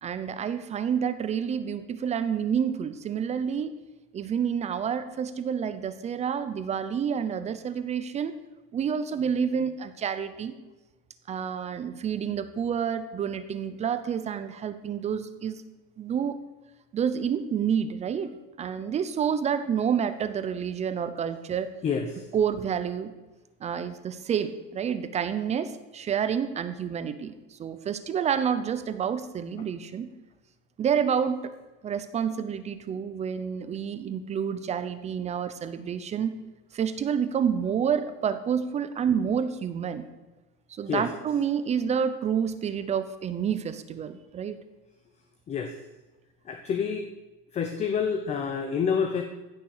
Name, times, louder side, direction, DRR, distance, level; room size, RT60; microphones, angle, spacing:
voice 1, 0.0-3.8 4.1-8.4 8.7-10.5 11.3-15.6 16.0-16.4 16.9-21.7 22.3-23.1 23.6-30.1 30.8-31.6 31.8-36.4 36.7-40.0 40.7-44.6, right 7 dB, 25° right, 12 dB, 0.6 m, -29 dB
voice 2, 21.8-22.2 40.9-41.0 45.5-45.7 46.5-47.1 47.5-49.2, left 6 dB, 25° left, 6 dB, 0.8 m, -28 dB
15.5 x 6.6 x 6.6 m, 1.1 s
cardioid pair, 165°, 29 cm